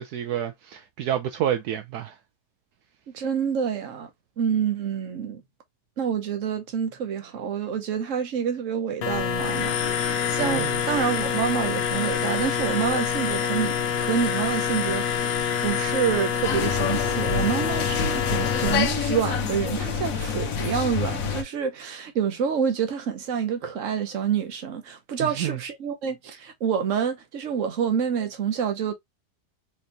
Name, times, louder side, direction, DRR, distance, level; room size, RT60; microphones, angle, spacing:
voice 1, 0.0-2.1 10.4-10.8 25.2-25.6, right 10 dB, 75° right, 1.1 m, -29 dB
voice 2, 3.1-4.1 4.4-5.4 6.0-15.3 15.6-28.9, right 7 dB, 55° right, 1.2 m, -27 dB
sound 1, 9.0-18.8, left 8 dB, 85° left, 1.4 m, -26 dB
sound 2, 16.4-21.4, left 6 dB, 60° left, 1.2 m, -27 dB
4.4 x 3.2 x 2.6 m
omnidirectional pair, 1.7 m